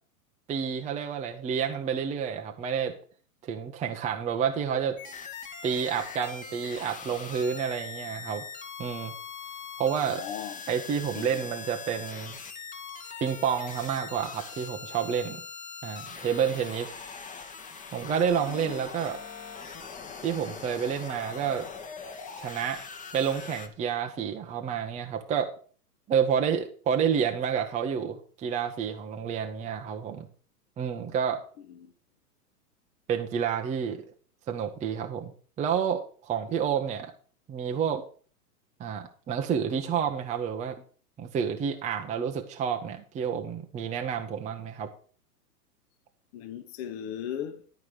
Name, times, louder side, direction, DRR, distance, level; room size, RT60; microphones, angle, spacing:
voice 1, 0.5-2.9 3.4-5.0 5.6-8.4 8.8-9.1 9.8-10.2 10.7-12.4 13.2-15.4 15.8-16.9 17.9-19.2 20.2-21.7 22.4-22.8 23.1-25.5 26.1-30.3 30.8-31.4 33.1-34.0 34.5-35.3 35.6-37.1 37.5-38.0 38.8-40.8 41.2-44.9, right 7 dB, 15° right, 0.8 m, -29 dB
sound 1, 5.0-23.7, left 5 dB, 15° left, 1.2 m, -42 dB
voice 2, 10.1-10.6 11.1-11.5 18.4-18.9 31.6-31.9 46.3-47.7, left 9 dB, 40° left, 1.1 m, -38 dB
11.0 x 4.7 x 6.4 m
hypercardioid pair, 115°, 47 cm